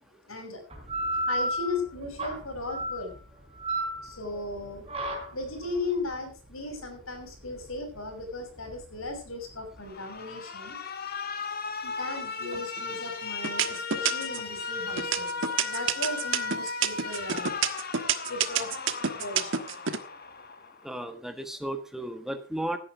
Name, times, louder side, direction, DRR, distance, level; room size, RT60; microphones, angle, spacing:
voice 1, 0.3-0.6 1.2-3.2 4.0-4.9 5.3-10.8 11.8-17.6 18.3-19.5, left 2 dB, 75° left, 5 dB, 6.4 m, -37 dB
sound 1, 0.7-9.9, right 1 dB, 30° right, 4.4 m, -34 dB
Alarm, 9.8-20.9, left 4 dB, 45° left, 1.8 m, -36 dB
sound 2, 12.5-13.0 13.4-14.5 15.0-20.0, right 8 dB, 60° right, 1.4 m, -27 dB
voice 2, 20.8-22.8, right 1 dB, ahead, 8 dB, 1.4 m, -34 dB
17.0 x 9.9 x 4.9 m, 0.35 s
head